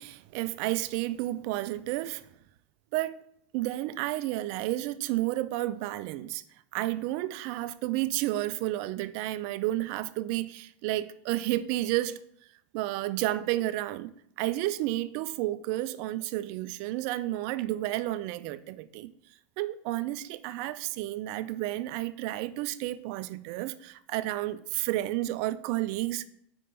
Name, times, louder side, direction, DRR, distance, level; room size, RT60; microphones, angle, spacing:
voice 1, 0.0-2.3 2.9-3.2 3.5-6.4 6.7-12.2 12.7-14.1 14.4-19.1 19.6-26.2, right 16 dB, 55° right, 0.4 m, -31 dB
5.2 x 3.6 x 5.5 m
supercardioid pair, 120°, 8 cm